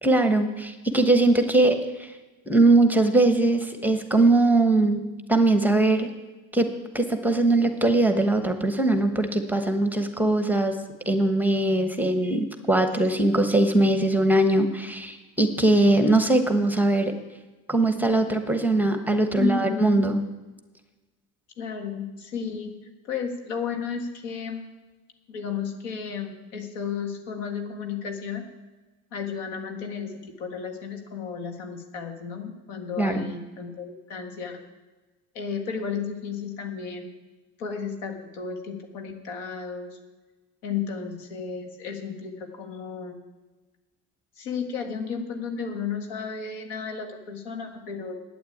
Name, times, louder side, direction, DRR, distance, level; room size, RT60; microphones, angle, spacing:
voice 1, 0.0-2.1 2.5-5.0 5.3-6.1 6.5-6.7 6.9-10.8 11.0-17.1 17.7-20.2 33.0-33.2, right 2 dB, 5° right, 7 dB, 1.1 m, -21 dB
voice 2, 19.3-20.0 21.6-22.7 23.0-24.7 25.3-28.4 29.1-34.6 35.3-37.1 37.6-39.9 40.6-43.2 44.4-48.1, left 6 dB, 85° left, 4 dB, 2.1 m, -33 dB
8.8 x 8.6 x 8.6 m, 1.2 s
supercardioid pair, 105°, 38 cm